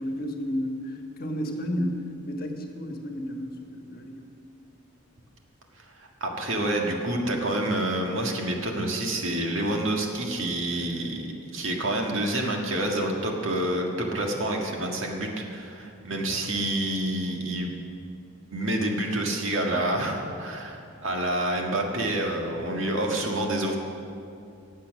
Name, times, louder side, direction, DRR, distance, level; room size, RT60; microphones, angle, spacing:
voice 1, 0.0-4.3, equal, 45° left, 2 dB, 1.4 m, -32 dB
voice 2, 5.8-17.7 18.5-23.8, right 1 dB, 70° right, 1 dB, 1.8 m, -28 dB
18.0 x 7.5 x 6.3 m, 2.5 s
head